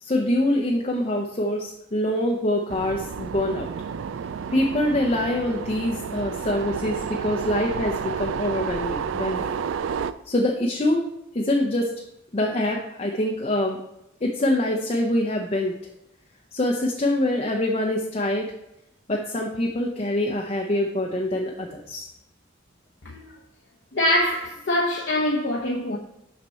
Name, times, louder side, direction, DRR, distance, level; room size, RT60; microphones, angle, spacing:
voice 1, 0.0-3.7 4.5-9.5 10.3-11.0 11.3-11.9 12.3-13.8 14.2-15.7 16.5-18.5 19.1-22.1, left 1 dB, 35° left, 0.6 m, -25 dB
sound 1, 2.7-10.1, right 6 dB, 90° right, 0.3 m, -31 dB
voice 2, 23.9-26.0, left 1 dB, 65° left, 0.8 m, -24 dB
6.9 x 5.9 x 4.4 m
head